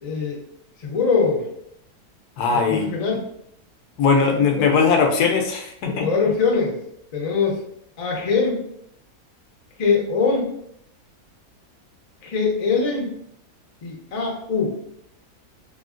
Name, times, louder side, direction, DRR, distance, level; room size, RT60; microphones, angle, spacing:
voice 1, 0.0-0.4 0.8-1.5 2.5-3.2 4.6-4.7 5.9-6.8 7.1-7.6 8.0-8.7 9.8-10.5 12.2-13.2 13.8-14.8, left 5 dB, 60° left, -1 dB, 0.4 m, -22 dB
voice 2, 2.4-2.9 4.0-6.1, left 5 dB, 80° left, 3 dB, 1.1 m, -19 dB
3.0 x 2.7 x 2.5 m, 0.71 s
omnidirectional pair, 1.6 m